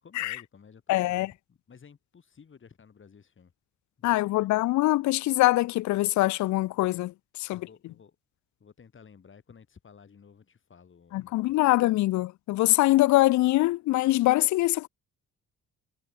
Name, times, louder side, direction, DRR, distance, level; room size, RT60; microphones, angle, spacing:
voice 1, 0.0-3.5 4.0-4.6 7.5-8.2 8.6-11.9, left 6 dB, 40° left, 5.0 m, -54 dB
voice 2, 0.9-1.3 4.0-7.1 7.4-7.6 11.1-14.9, left 17 dB, 70° left, 0.5 m, -23 dB
cardioid pair, 90°, 30 cm